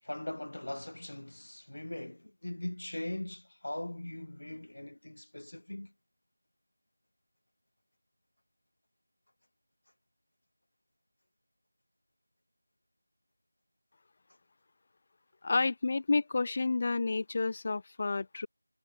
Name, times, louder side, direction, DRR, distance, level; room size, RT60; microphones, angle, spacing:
voice 1, 0.0-5.9, left 1 dB, 75° left, 7.3 m, -40 dB
voice 2, 15.4-18.5, left 3 dB, 30° left, 2.4 m, -30 dB
figure-of-eight pair, 175°, 0 cm